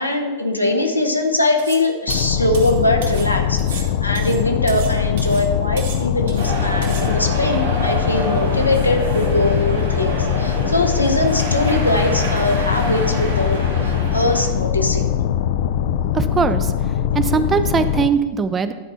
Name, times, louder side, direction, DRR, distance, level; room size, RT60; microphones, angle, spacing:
voice 1, 0.0-15.1, left 1 dB, 85° left, 3 dB, 0.9 m, -21 dB
sound 1, 1.6-1.8 2.1-3.3 3.6-4.9 5.2-5.5 5.8-6.5 6.8-7.1, right 6 dB, 55° right, 1.2 m, -36 dB
sound 2, 2.1-18.1, left 9 dB, 55° left, 0.3 m, -21 dB
sound 3, 6.4-14.5, right 2 dB, 75° right, 1.7 m, -27 dB
voice 2, 16.1-16.7 17.1-18.7, right 6 dB, 20° right, 11 dB, 0.5 m, -20 dB
10.5 x 4.4 x 5.6 m, 1.3 s
figure-of-eight pair, 90°, 0 cm